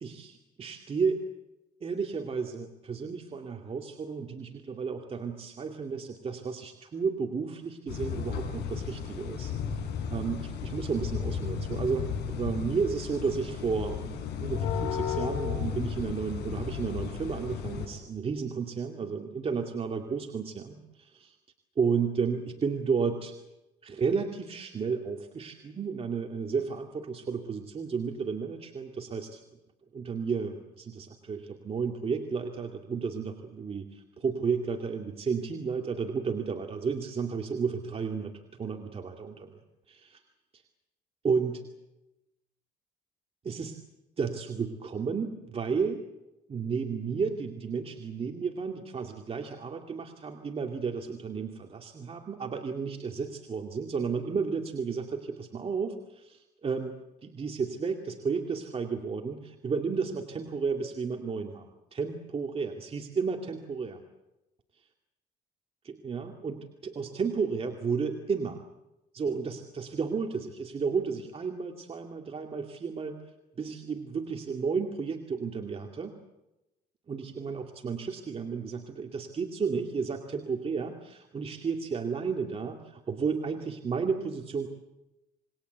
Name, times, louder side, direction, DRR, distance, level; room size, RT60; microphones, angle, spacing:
voice 1, 0.0-1.3 1.8-9.5 10.1-21.4 21.8-23.4 23.8-29.4 29.9-38.3 38.6-39.6 39.9-40.2 41.2-41.6 43.4-43.8 44.2-46.0 46.5-56.9 57.2-64.0 65.8-68.6 69.1-73.2 73.6-76.2 77.1-84.7, right 5 dB, 35° right, 3 dB, 2.3 m, -32 dB
sound 1, 7.9-17.9, left 7 dB, 80° left, 6.9 m, -34 dB
28.0 x 21.0 x 8.1 m, 0.96 s
cardioid pair, 110°, 17 cm